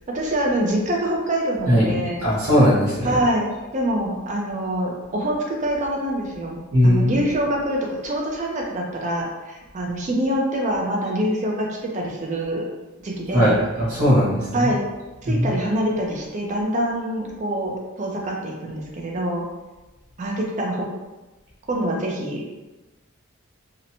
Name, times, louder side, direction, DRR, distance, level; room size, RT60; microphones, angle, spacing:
voice 1, 0.1-2.3 3.0-3.5 3.7-12.6 13.0-13.5 14.5-14.8 15.3-19.4 20.2-20.9 21.7-22.5, right 1 dB, 35° right, -1 dB, 0.4 m, -25 dB
voice 2, 2.2-3.2 6.7-7.1 13.3-14.7 15.2-15.5, equal, 80° right, -11 dB, 1.1 m, -18 dB
2.8 x 2.0 x 2.6 m, 1.1 s
head